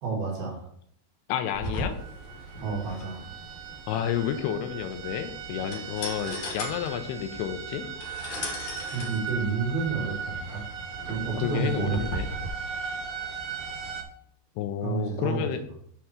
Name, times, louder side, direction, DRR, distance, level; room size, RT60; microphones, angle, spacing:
voice 1, 0.0-0.6 2.6-3.3 8.9-10.6 11.0-12.0 14.8-15.5, right 5 dB, 65° right, -1 dB, 3.3 m, -30 dB
voice 2, 1.3-2.0 3.9-7.9 11.4-12.3 14.6-15.6, left 9 dB, 85° left, 7 dB, 2.6 m, -30 dB
sound 1, 1.5-12.5, left 1 dB, 60° left, 2.2 m, -38 dB
sound 2, 2.0-14.0, right 6 dB, 90° right, 1.6 m, -38 dB
7.6 x 3.4 x 5.8 m, 0.66 s
omnidirectional pair, 4.8 m